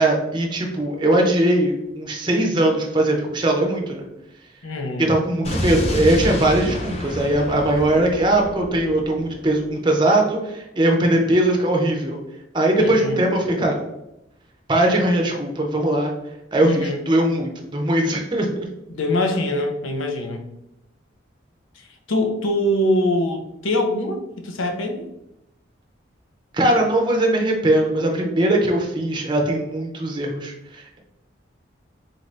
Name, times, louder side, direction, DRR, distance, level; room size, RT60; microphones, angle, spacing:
voice 1, 0.0-4.0 5.0-12.2 12.5-13.8 14.7-16.1 16.5-18.5 26.5-31.0, right 1 dB, 25° right, 1 dB, 0.5 m, -20 dB
voice 2, 4.6-5.1 12.8-13.3 16.6-17.0 18.9-20.5 21.7-25.1, left 1 dB, 90° left, 4 dB, 0.6 m, -24 dB
Explosion, 5.4-9.5, left 1 dB, 30° left, 0.5 m, -28 dB
4.0 x 2.6 x 3.2 m, 0.86 s
head